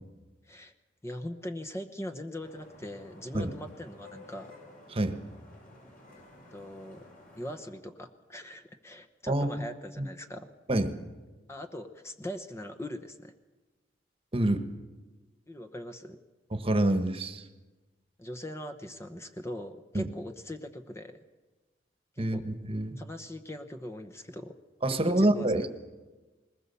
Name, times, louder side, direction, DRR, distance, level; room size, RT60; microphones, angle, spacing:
voice 1, 1.0-4.5 6.5-7.0 7.4-10.5 11.5-13.3 15.5-16.2 18.2-21.2 22.2-22.5 23.0-24.6 24.9-25.7, left 1 dB, 15° left, 5 dB, 1.0 m, -41 dB
Vehicle horn car horn honking / Traffic noise roadway noise, 2.4-7.6, left 2 dB, 50° left, 6.0 m, -53 dB
voice 2, 14.3-14.6 16.5-17.4 19.9-20.1 22.2-23.0 24.8-25.7, right 1 dB, 30° right, 9 dB, 1.3 m, -27 dB
21.0 x 20.0 x 6.9 m, 1.2 s
head